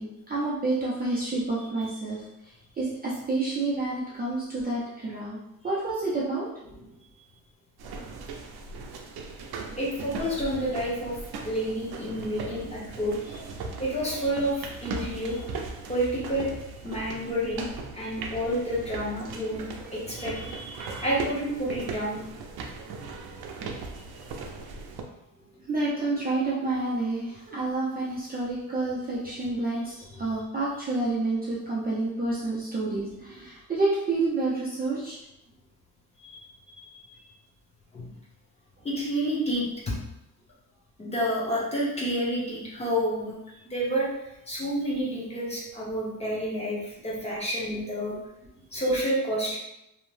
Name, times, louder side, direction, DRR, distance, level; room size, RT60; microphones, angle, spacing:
voice 1, 0.0-2.2 2.8-5.4 5.6-6.5 25.7-35.2, right 2 dB, 25° right, -7 dB, 0.4 m, -29 dB
voice 2, 1.6-1.9 9.8-11.1 11.4-13.1 13.8-15.4 15.9-16.5 16.8-17.7 17.9-19.6 19.9-22.2 36.2-36.4 36.8-36.9 37.9-38.1 38.8-39.9 41.0-43.3 43.7-44.1 44.5-48.1 48.7-49.6, equal, 15° left, -6 dB, 0.7 m, -29 dB
sound 1, 7.8-25.0, right 4 dB, 85° right, 0.5 m, -38 dB
2.7 x 2.0 x 3.0 m, 0.86 s
wide cardioid pair, 170°, 36 cm